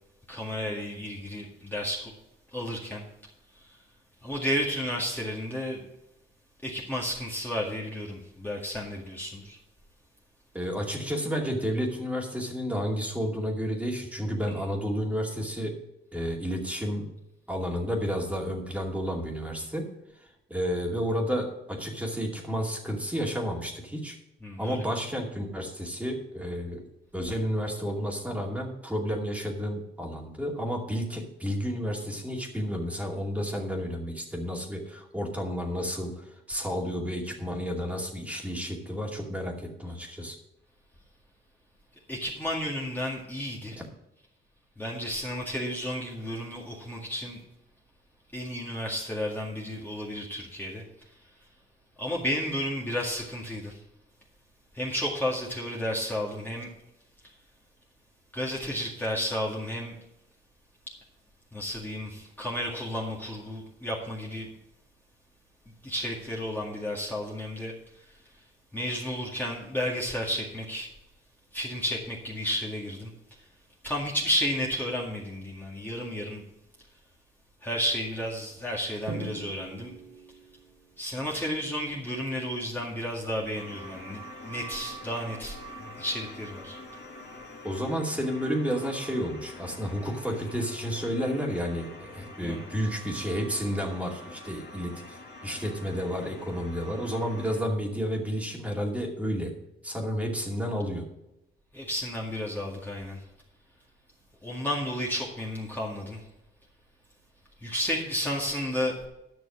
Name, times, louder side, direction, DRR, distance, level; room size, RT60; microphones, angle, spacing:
voice 1, 0.3-2.1 2.5-3.0 3.6-3.7 4.2-5.8 6.6-9.6 24.4-24.8 42.1-43.8 44.8-47.4 48.3-50.8 52.0-53.8 54.7-56.7 58.3-59.9 61.5-64.5 65.8-68.1 68.7-70.9 71.5-73.1 73.8-76.4 77.6-79.9 81.0-86.8 92.4-92.7 101.7-103.2 104.4-106.2 107.6-109.0, equal, 10° left, -3 dB, 2.0 m, -32 dB
voice 2, 10.5-15.8 16.1-17.1 17.5-19.9 20.1-24.2 24.6-26.8 27.1-40.4 87.6-99.6 99.8-101.0, equal, 5° right, 0 dB, 2.4 m, -31 dB
Drum, 79.1-81.2, right 5 dB, 60° right, 1.6 m, -41 dB
sound 1, 83.5-97.6, equal, 55° left, 2.3 m, -45 dB
10.5 x 6.3 x 6.1 m, 0.87 s
cardioid pair, 90°, 20 cm